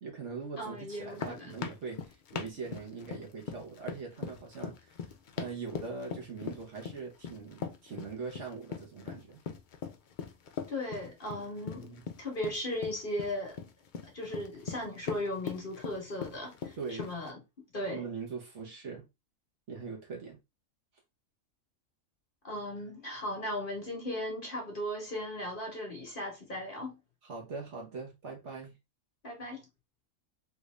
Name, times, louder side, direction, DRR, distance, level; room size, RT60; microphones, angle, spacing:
voice 1, 0.0-5.0 5.4-9.4 11.7-12.0 16.8-17.1 17.9-19.1 19.7-20.4 27.2-28.7, right 4 dB, 60° right, 1.3 m, -42 dB
voice 2, 0.6-1.5 10.7-13.6 14.0-17.4 17.7-18.0 22.4-27.0 29.2-29.6, left 1 dB, 40° left, 1.1 m, -37 dB
sound 1, 0.9-17.3, left 6 dB, 75° left, 0.4 m, -41 dB
3.5 x 2.6 x 3.1 m
omnidirectional pair, 1.4 m